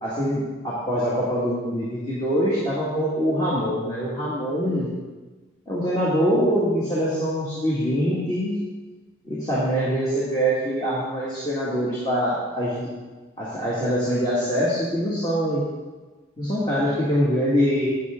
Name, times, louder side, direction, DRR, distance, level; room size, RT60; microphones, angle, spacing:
voice 1, 0.0-4.9 5.7-8.6 9.2-12.9 13.4-15.6 16.4-17.9, equal, 25° left, -8 dB, 1.8 m, -24 dB
11.0 x 7.9 x 3.6 m, 1.3 s
head